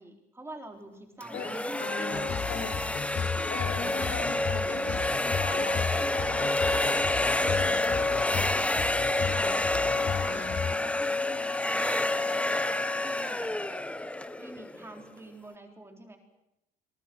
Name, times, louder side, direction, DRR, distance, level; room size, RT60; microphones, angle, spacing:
voice 1, 0.0-2.7 7.4-9.0 9.2-12.7 13.0-13.8 14.4-16.2, right 1 dB, 15° right, 3 dB, 4.0 m, -47 dB
sound 1, 1.2-15.1, left 2 dB, 5° left, 1.2 m, -28 dB
voice 2, 1.3-2.7 3.5-6.5 7.3-8.4, left 5 dB, 75° left, 1 dB, 6.0 m, -39 dB
sound 2, 2.1-10.7, left 8 dB, 40° left, 1.1 m, -35 dB
28.5 x 23.0 x 6.2 m, 0.90 s
cardioid pair, 110°, 17 cm